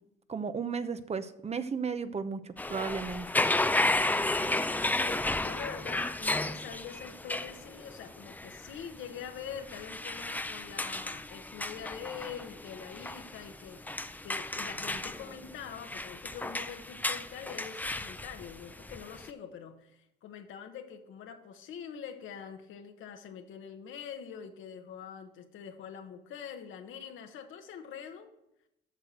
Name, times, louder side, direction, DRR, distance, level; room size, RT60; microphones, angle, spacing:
voice 1, 0.3-3.3, right 5 dB, 35° right, 12 dB, 0.7 m, -34 dB
sound 1, 2.6-19.3, left 2 dB, 10° left, 0.5 m, -33 dB
voice 2, 4.3-28.3, left 8 dB, 85° left, 6 dB, 1.3 m, -44 dB
8.2 x 6.5 x 7.7 m, 0.84 s
cardioid pair, 90°, 20 cm